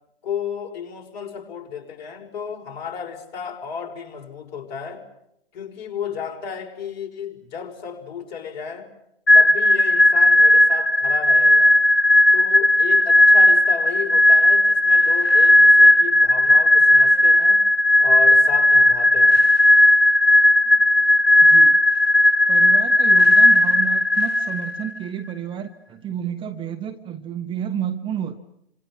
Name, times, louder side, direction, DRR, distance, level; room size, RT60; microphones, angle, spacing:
voice 1, 0.2-5.0 5.5-8.9 9.3-11.8 12.3-17.6 18.0-19.4, left 7 dB, 50° left, 3 dB, 5.4 m, -33 dB
sound 1, 9.3-24.9, left 1 dB, 90° left, 1.3 m, -15 dB
voice 2, 21.4-21.8 22.5-28.4, right 9 dB, 15° right, 8 dB, 1.1 m, -31 dB
29.0 x 26.5 x 7.5 m, 0.80 s
hypercardioid pair, 125°, 30 cm